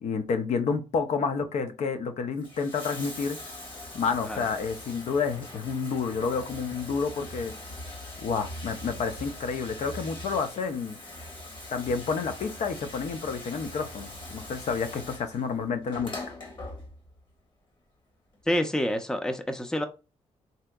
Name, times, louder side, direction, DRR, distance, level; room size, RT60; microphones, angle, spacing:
voice 1, 0.0-3.4 3.9-7.5 8.2-11.0 11.7-16.1, left 5 dB, 65° left, 0.5 m, -29 dB
Bathtub (filling or washing), 2.2-17.2 18.3-18.4, left 1 dB, 40° left, 1.2 m, -42 dB
voice 2, 18.5-19.9, equal, 5° left, 0.4 m, -27 dB
3.4 x 2.7 x 2.3 m
cardioid pair, 100°, 12 cm